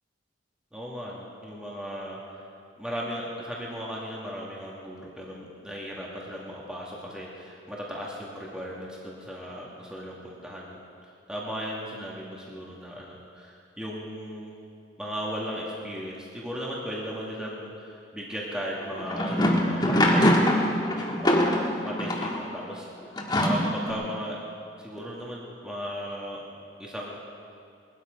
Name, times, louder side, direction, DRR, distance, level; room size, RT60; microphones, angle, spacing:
voice 1, 0.7-2.5 2.8-14.5 15.0-22.9 23.4-24.4 24.8-26.4 26.8-27.2, equal, 5° right, -5 dB, 2.0 m, -37 dB
sound 1, 18.8-22.4 23.2-23.9, left 1 dB, 20° left, 1.8 m, -23 dB
20.5 x 13.0 x 5.3 m, 2.4 s
head